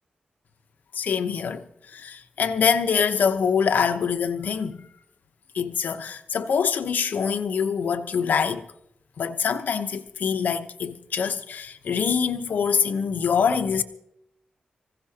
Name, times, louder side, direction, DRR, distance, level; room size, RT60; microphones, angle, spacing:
voice 1, 0.9-1.7 1.9-4.9 5.5-8.6 9.2-13.8, left 6 dB, 85° left, 0.9 m, -24 dB
25.0 x 16.0 x 2.9 m
wide cardioid pair, 110°, 3 cm